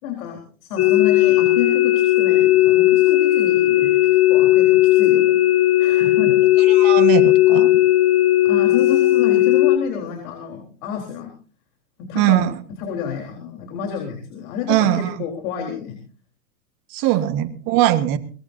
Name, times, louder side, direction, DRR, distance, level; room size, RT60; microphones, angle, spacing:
voice 1, 0.0-3.9 4.3-5.4 5.8-6.4 8.4-11.3 12.0-12.4 12.8-16.0 17.0-17.2, left 8 dB, 60° left, 2 dB, 4.2 m, -29 dB
sound 1, 0.8-9.8, left 15 dB, 30° left, 1.3 m, -16 dB
voice 2, 6.7-7.7 12.1-12.5 14.7-15.1 16.9-18.2, right 14 dB, 45° right, 10 dB, 1.8 m, -20 dB
22.5 x 19.5 x 2.7 m, 0.39 s
hypercardioid pair, 105°, 47 cm